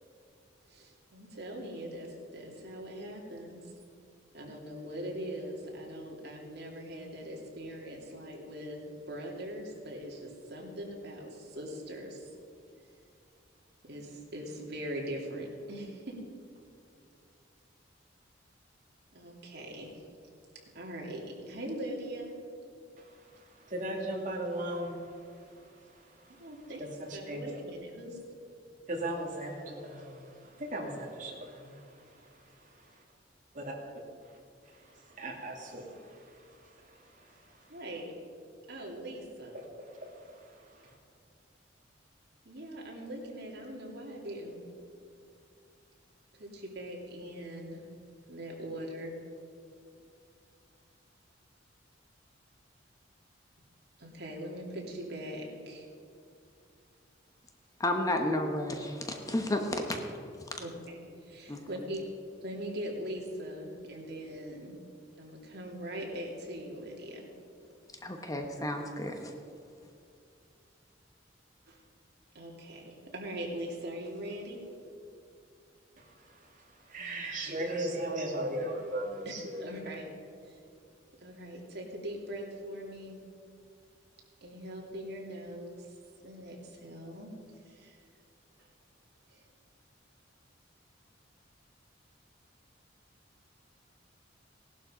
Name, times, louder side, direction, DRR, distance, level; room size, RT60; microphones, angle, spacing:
voice 1, 0.7-3.7 4.3-8.8 9.1-12.3 13.8-16.1 19.1-20.0 20.7-22.3 26.4-28.2 37.7-38.1 38.7-39.6 42.4-44.6 46.3-47.8 48.3-49.1 54.0-55.9 60.6-62.0 62.4-64.7 65.2-67.2 71.7-71.8 72.3-74.6 79.6-80.1 80.5-80.6 81.2-83.2 84.4-85.9 86.2-87.3 87.7-88.0 88.6-88.7 89.3-89.4, equal, 60° right, -2 dB, 2.9 m, -41 dB
voice 2, 23.7-25.0 27.3-27.4 28.9-30.3 30.6-31.8 33.6-33.7 35.2-35.8 76.9-79.6, right 1 dB, 45° right, -1 dB, 2.6 m, -36 dB
voice 3, 57.8-60.0 61.5-61.6 68.0-69.3, left 1 dB, 20° left, 4 dB, 1.1 m, -32 dB
17.0 x 12.0 x 5.1 m, 2.4 s
head